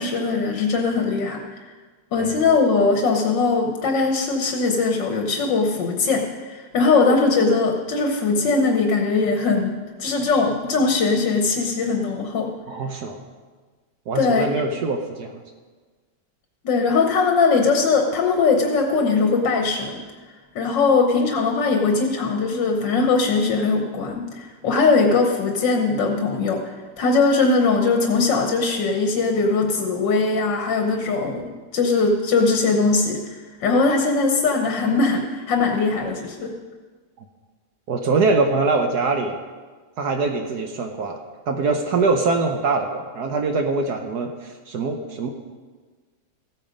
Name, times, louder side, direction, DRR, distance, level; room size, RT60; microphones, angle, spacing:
voice 1, 0.0-1.4 2.1-12.5 14.2-14.5 16.6-20.0 20.6-26.6 27.0-33.2 33.6-36.5, left 4 dB, 80° left, 3 dB, 1.8 m, -20 dB
voice 2, 12.7-13.2 14.1-15.3 37.9-39.4 40.0-41.2 41.5-45.3, right 3 dB, 65° right, 4 dB, 1.4 m, -23 dB
15.0 x 8.7 x 5.2 m, 1.4 s
omnidirectional pair, 1.9 m